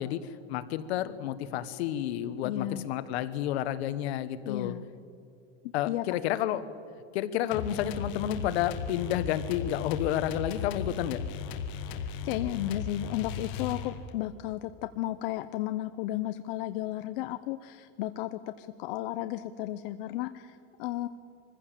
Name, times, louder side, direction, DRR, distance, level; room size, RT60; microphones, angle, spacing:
voice 1, 0.0-4.7 5.7-6.6 7.1-11.2, left 11 dB, 80° left, 12 dB, 1.3 m, -30 dB
voice 2, 2.4-2.9 4.4-4.9 5.6-6.0 12.0-21.1, left 14 dB, 55° left, 10 dB, 0.7 m, -34 dB
sound 1, 7.5-14.2, left 6 dB, 40° left, 1.4 m, -36 dB
23.5 x 15.5 x 7.5 m, 2.5 s
supercardioid pair, 180°, 32 cm